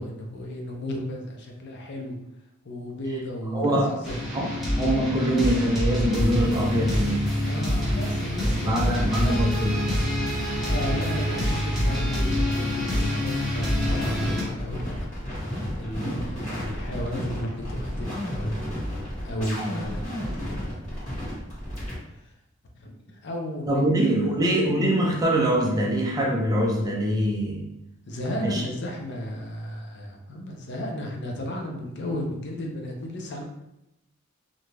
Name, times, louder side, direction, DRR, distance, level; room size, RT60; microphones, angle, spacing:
voice 1, 0.0-2.2 2.6-4.2 7.4-9.3 10.6-15.1 15.8-18.6 19.2-20.9 22.2-22.3 22.7-24.3 28.1-33.4, equal, 55° left, 1 dB, 0.5 m, -34 dB
voice 2, 3.5-4.0 4.3-4.5 4.8-7.2 8.6-9.8 16.0-16.3 23.7-27.7 28.4-28.6, right 1 dB, 20° right, -1 dB, 0.4 m, -24 dB
sound 1, 4.0-14.4, left 1 dB, ahead, 0.8 m, -26 dB
sound 2, 13.8-21.9, equal, 35° left, 1.4 m, -32 dB
2.5 x 2.2 x 3.1 m, 0.87 s
head